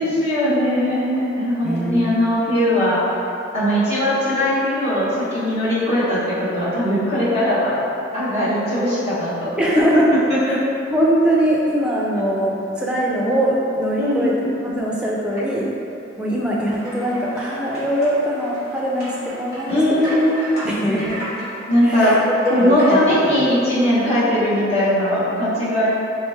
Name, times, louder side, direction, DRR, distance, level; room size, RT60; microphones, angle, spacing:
voice 1, 0.0-3.2 3.5-7.8 8.1-9.8 10.3-10.6 14.0-14.3 19.7-20.3 21.7-22.1 22.5-25.9, left 1 dB, 35° left, -12 dB, 0.9 m, -19 dB
voice 2, 1.6-2.2 9.6-10.1 10.4-10.5 10.9-14.3 14.6-15.7 16.2-19.8 20.6-21.3 21.8-22.2 22.5-23.0, right 1 dB, 5° right, -5 dB, 0.4 m, -22 dB
sound 1, 16.7-24.2, equal, 55° left, 1.4 m, -31 dB
3.5 x 2.9 x 3.4 m, 2.8 s
head